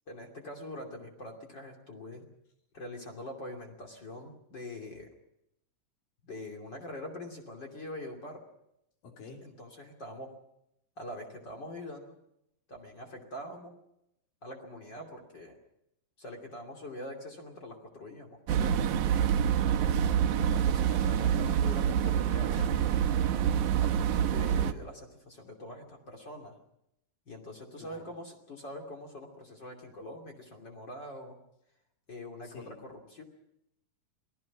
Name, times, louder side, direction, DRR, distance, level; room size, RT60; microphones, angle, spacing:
voice 1, 0.1-2.2 2.7-5.1 6.3-8.4 9.4-10.4 11.0-12.1 12.7-13.8 14.4-15.5 16.2-18.7 20.5-23.0 23.6-26.5 27.3-31.3 32.1-33.2, left 1 dB, 30° left, 2 dB, 3.1 m, -44 dB
voice 2, 9.0-9.5 19.7-20.6 27.8-28.1 32.4-32.8, left 4 dB, 70° left, 1 dB, 5.1 m, -49 dB
sound 1, 18.5-24.7, right 9 dB, 70° right, 2.2 m, -26 dB
28.0 x 19.0 x 6.0 m, 0.82 s
omnidirectional pair, 4.0 m